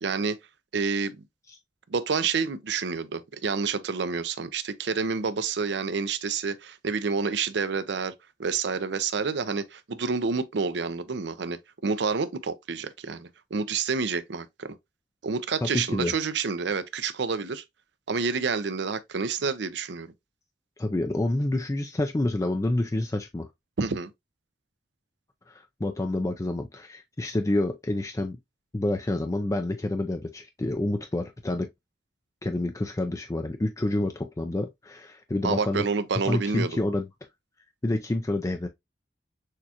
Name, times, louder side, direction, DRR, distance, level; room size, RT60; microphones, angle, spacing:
voice 1, 0.0-0.4 0.7-1.2 1.9-8.1 8.4-14.8 15.2-17.6 18.1-20.1 23.8-24.1 35.4-36.8, right 5 dB, 70° right, 0.6 m, -28 dB
voice 2, 15.6-16.1 20.8-23.5 25.5-28.4 28.7-31.7 32.4-35.8 36.2-37.1 37.8-38.7, left 1 dB, 20° left, 0.4 m, -28 dB
6.4 x 2.4 x 2.8 m
head